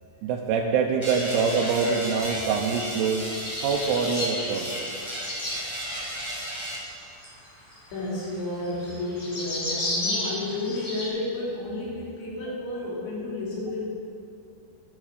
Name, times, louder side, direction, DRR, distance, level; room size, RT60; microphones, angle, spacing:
voice 1, 0.2-3.3 3.6-4.7, right 5 dB, 75° right, 0 dB, 2.5 m, -25 dB
sound 1, 1.0-6.8, equal, 25° left, 0.6 m, -34 dB
sound 2, 3.2-5.6 6.3-11.1, left 1 dB, 50° left, 5.4 m, -32 dB
voice 2, 7.9-13.8, left 2 dB, 80° left, -6 dB, 5.4 m, -31 dB
12.5 x 12.0 x 4.9 m, 2.6 s
omnidirectional pair, 5.1 m